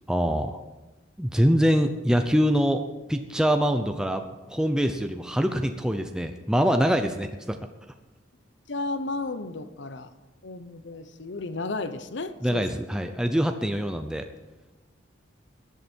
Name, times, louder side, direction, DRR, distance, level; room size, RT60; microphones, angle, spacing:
voice 1, 0.1-0.6 1.2-7.6 12.4-14.3, equal, 5° right, 6 dB, 0.6 m, -24 dB
voice 2, 8.7-10.1 10.4-12.7, left 3 dB, 75° left, 11 dB, 0.8 m, -33 dB
18.0 x 11.0 x 4.5 m, 1.1 s
head